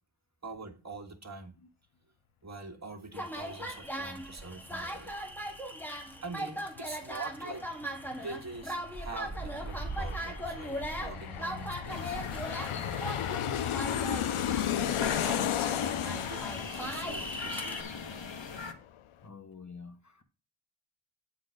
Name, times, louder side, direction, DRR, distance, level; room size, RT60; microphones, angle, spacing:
voice 1, 0.4-1.5 2.4-5.1 5.8-7.9 8.2-12.2 13.1-13.6 14.1-14.6 15.0-17.9, right 3 dB, 35° right, 1.8 m, -45 dB
sound 1, 3.1-17.8, right 1 dB, 5° left, 1.8 m, -39 dB
Aircraft, 6.8-6.9 7.1-18.4 18.7-18.8, left 10 dB, 85° left, 0.6 m, -34 dB
sound 2, 11.9-18.7, left 5 dB, 65° left, 1.3 m, -41 dB
voice 2, 12.7-13.1 19.2-20.2, left 5 dB, 35° left, 1.2 m, -48 dB
9.4 x 4.1 x 6.5 m
wide cardioid pair, 80°, 49 cm